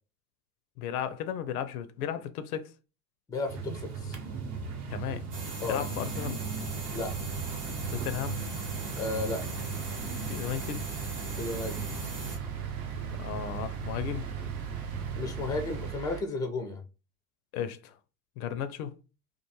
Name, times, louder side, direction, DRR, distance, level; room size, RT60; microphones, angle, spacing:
voice 1, 0.8-2.7 4.9-5.3 5.7-6.4 7.9-8.4 10.3-10.9 13.2-14.3 17.5-18.0 18.4-19.0, left 9 dB, 70° left, 0.5 m, -34 dB
voice 2, 3.3-4.2 5.6-5.9 6.9-7.1 9.0-9.4 11.3-12.1 15.1-16.8, left 3 dB, 10° left, 0.4 m, -33 dB
sound 1, 3.5-15.9, right 5 dB, 35° right, 0.7 m, -38 dB
sound 2, 3.7-16.2, right 11 dB, 70° right, 0.8 m, -43 dB
sound 3, 5.3-12.4, right 2 dB, 85° right, 1.1 m, -40 dB
2.4 x 2.3 x 2.7 m
hypercardioid pair, 80°, 46 cm